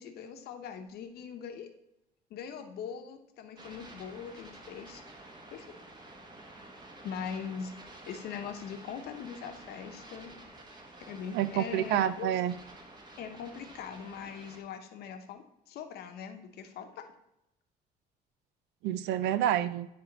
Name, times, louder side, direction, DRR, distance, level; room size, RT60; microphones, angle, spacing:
voice 1, 0.0-1.7 2.3-5.0 5.5-5.7 7.0-7.7 8.1-10.3 11.1-12.3 13.2-17.1, left 7 dB, 70° left, 6 dB, 0.9 m, -41 dB
sound 1, 3.6-14.6, right 2 dB, 25° right, 1.1 m, -50 dB
voice 2, 11.3-12.5 18.8-19.9, right 11 dB, 85° right, 14 dB, 0.5 m, -28 dB
9.8 x 3.4 x 3.9 m, 0.83 s
cardioid pair, 110°, 17 cm